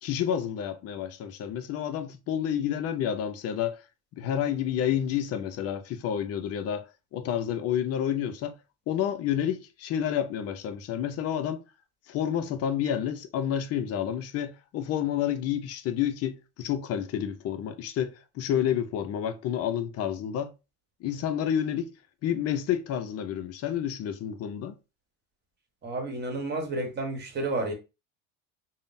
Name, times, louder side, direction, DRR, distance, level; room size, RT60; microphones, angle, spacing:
voice 1, 0.0-3.8 4.1-6.8 7.1-8.6 8.9-11.6 12.1-20.5 21.0-21.9 22.2-24.8, left 9 dB, 45° left, 0.4 m, -29 dB
voice 2, 25.8-27.7, right 2 dB, 30° right, 1.0 m, -31 dB
3.6 x 2.0 x 2.5 m
supercardioid pair, 120°, 36 cm